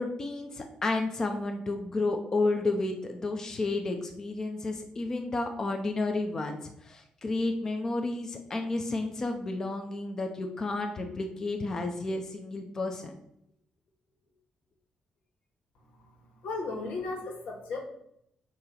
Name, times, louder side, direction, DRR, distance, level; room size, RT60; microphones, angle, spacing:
voice 1, 0.0-13.1, left 2 dB, 25° left, 4 dB, 0.7 m, -31 dB
voice 2, 16.4-17.8, left 3 dB, 90° left, 1 dB, 1.8 m, -35 dB
8.5 x 2.9 x 5.8 m, 0.74 s
cardioid pair, 175°, 2 cm